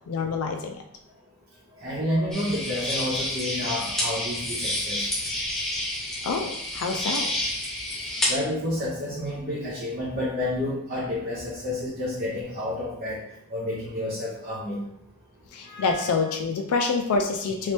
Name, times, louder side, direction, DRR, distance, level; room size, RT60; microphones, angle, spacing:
voice 1, 0.1-0.8 6.2-7.3 15.5-17.7, left 4 dB, 75° left, 3 dB, 0.3 m, -27 dB
voice 2, 1.8-5.1 8.3-13.2 13.5-14.8 15.6-16.1, left 1 dB, 40° right, -6 dB, 0.7 m, -30 dB
sound 1, 2.3-8.3, left 1 dB, ahead, 0.9 m, -29 dB
3.1 x 2.8 x 3.3 m, 0.77 s
head